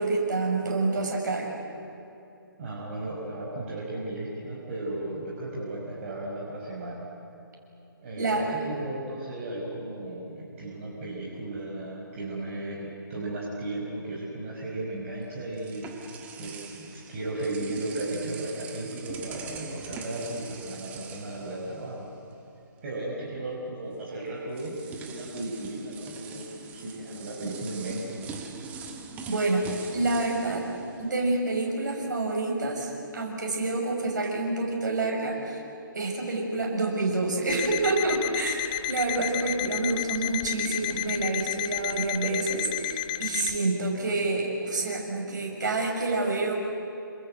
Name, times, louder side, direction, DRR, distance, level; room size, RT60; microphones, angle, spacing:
voice 1, 0.0-1.5 8.2-8.4 29.3-30.6 31.0-35.6 35.9-46.6, right 2 dB, 55° right, 0 dB, 6.8 m, -28 dB
voice 2, 2.6-7.1 8.0-16.0 16.4-22.1 22.8-26.4 26.7-28.2, right 1 dB, 35° right, -3 dB, 5.1 m, -35 dB
sound 1, 15.1-22.3 22.6-22.8 23.9-24.0 24.5-31.7, right 5 dB, 10° right, 1.6 m, -43 dB
Alarm, 37.5-43.6, left 15 dB, 20° left, 0.8 m, -32 dB
28.5 x 27.0 x 7.8 m, 2.9 s
figure-of-eight pair, 145°, 12 cm